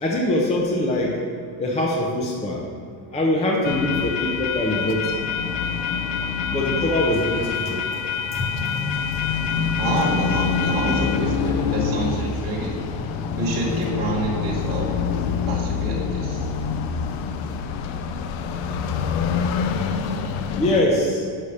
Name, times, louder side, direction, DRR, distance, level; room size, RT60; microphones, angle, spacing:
voice 1, 0.0-1.2 1.6-2.6 3.1-5.1 6.5-7.8 8.3-8.6 20.5-21.3, left 1 dB, 15° left, -1 dB, 0.5 m, -23 dB
sound 1, 3.6-20.8, left 6 dB, 75° left, 0.6 m, -26 dB
voice 2, 9.8-12.8 13.3-14.9 15.5-16.5, right 2 dB, 30° right, -5 dB, 1.2 m, -27 dB
5.6 x 4.7 x 6.5 m, 2.2 s
cardioid pair, 170°, 48 cm